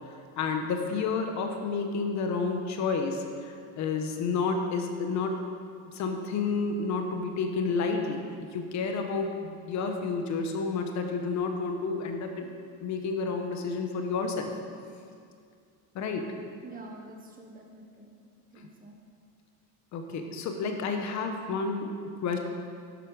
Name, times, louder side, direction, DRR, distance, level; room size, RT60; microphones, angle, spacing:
voice 1, 0.1-5.4 5.9-12.5 12.8-14.5 15.9-16.3 19.9-21.9 22.2-22.4, left 4 dB, 45° left, 4 dB, 1.1 m, -30 dB
voice 2, 16.6-18.1 18.5-19.0 22.3-22.4, right 2 dB, 20° right, 2 dB, 1.1 m, -47 dB
11.5 x 8.1 x 4.9 m, 2.3 s
cardioid pair, 150°, 38 cm